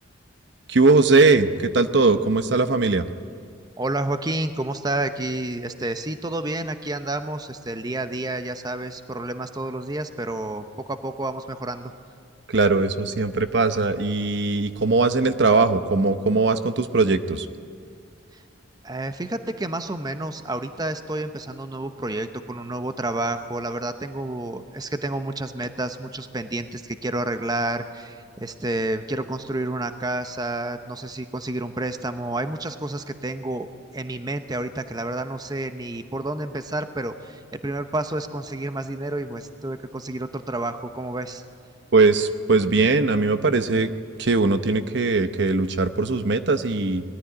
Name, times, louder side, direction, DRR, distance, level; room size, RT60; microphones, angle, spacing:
voice 1, 0.7-3.0 12.5-17.5 41.9-43.9 44.2-47.0, right 3 dB, 65° right, 9 dB, 0.9 m, -20 dB
voice 2, 3.8-11.9 18.8-33.7 33.9-41.4, right 2 dB, 20° right, 8 dB, 0.8 m, -30 dB
20.5 x 14.0 x 9.7 m, 2.3 s
head